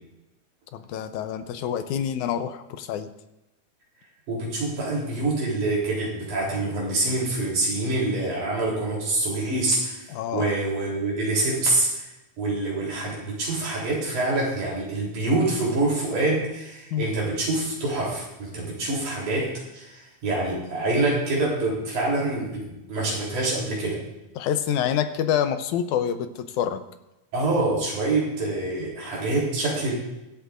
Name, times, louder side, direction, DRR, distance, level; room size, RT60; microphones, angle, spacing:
voice 1, 0.7-3.1 10.1-10.6 16.9-17.1 24.4-26.8, left 9 dB, 85° left, 9 dB, 2.2 m, -27 dB
voice 2, 4.3-10.0 10.3-12.1 12.4-24.0 27.3-29.9, right 2 dB, 90° right, -4 dB, 5.1 m, -26 dB
24.0 x 8.2 x 2.6 m, 0.97 s
omnidirectional pair, 3.4 m